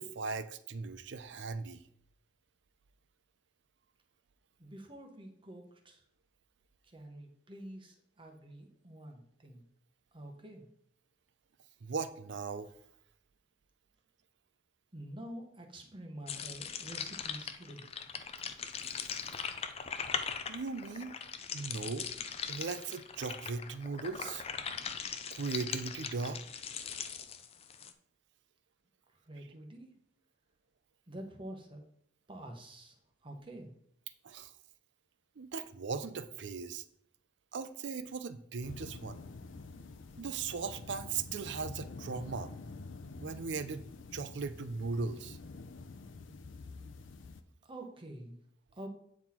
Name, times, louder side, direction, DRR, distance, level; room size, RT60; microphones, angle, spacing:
voice 1, 0.0-1.8 11.8-12.7 20.5-21.2 21.5-22.1 22.5-24.5 25.3-26.4 34.2-34.5 35.4-36.8 37.5-39.2 40.2-42.5 43.2-43.8 44.1-45.4, right 4 dB, 65° right, 13 dB, 0.5 m, -38 dB
voice 2, 4.6-6.0 6.8-9.7 10.1-10.7 14.9-17.8 29.2-29.9 31.1-31.8 32.3-32.9 33.2-33.7 47.6-48.4 48.7-48.9, right 1 dB, 25° right, 3 dB, 1.0 m, -47 dB
sound 1, 16.3-27.9, left 6 dB, 30° left, 0.5 m, -40 dB
sound 2, 38.6-47.4, left 3 dB, 90° left, 0.6 m, -48 dB
9.0 x 4.1 x 4.3 m, 0.70 s
head